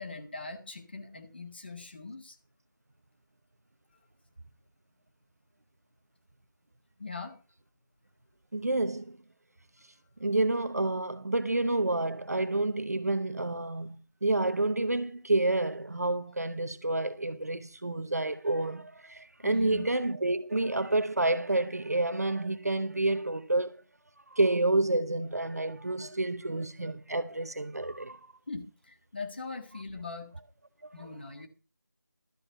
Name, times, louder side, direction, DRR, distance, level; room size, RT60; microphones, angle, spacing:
voice 1, 0.0-2.3 7.0-7.4 19.4-19.8 28.5-30.3 30.9-31.5, left 3 dB, 30° left, 1.6 m, -41 dB
voice 2, 8.5-9.2 10.2-23.8 24.3-28.2 31.0-31.1, right 2 dB, 55° right, 0.9 m, -29 dB
13.0 x 4.9 x 8.8 m
figure-of-eight pair, 170°, 10 cm